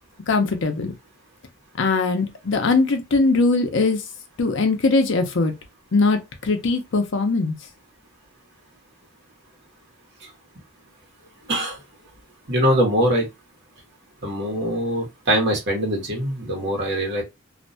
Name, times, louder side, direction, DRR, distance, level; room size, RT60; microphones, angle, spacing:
voice 1, 0.3-0.9 1.8-4.0 4.4-5.5 5.9-7.5, left 3 dB, 65° left, 0.6 m, -20 dB
voice 2, 11.5-11.8 12.5-13.3 14.2-17.2, equal, 60° right, 1.2 m, -22 dB
2.5 x 2.2 x 2.5 m
head